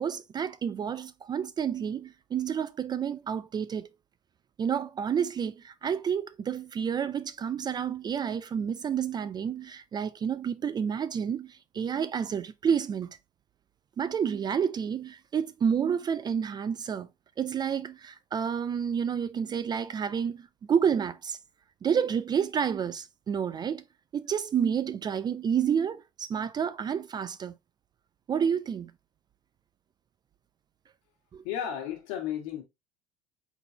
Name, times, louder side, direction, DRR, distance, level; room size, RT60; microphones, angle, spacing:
voice 1, 0.0-3.9 4.6-13.2 14.0-17.1 17.4-21.4 21.8-23.8 24.1-27.5 28.3-28.9 31.3-31.4, right 7 dB, 25° right, 0.4 m, -29 dB
voice 2, 31.4-32.6, left 10 dB, 75° left, 1.6 m, -33 dB
4.0 x 3.8 x 2.7 m
supercardioid pair, 105°, 17 cm